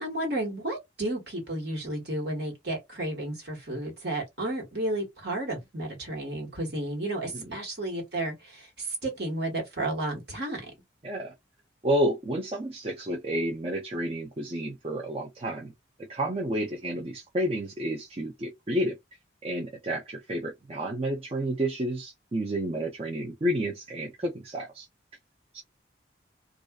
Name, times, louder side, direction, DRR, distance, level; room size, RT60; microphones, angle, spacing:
voice 1, 0.0-10.6, right 1 dB, 60° right, 1.5 m, -32 dB
voice 2, 11.8-15.7 16.1-19.0 19.4-24.9 25.5-25.6, right 1 dB, 30° right, 0.4 m, -30 dB
2.5 x 2.3 x 2.3 m
head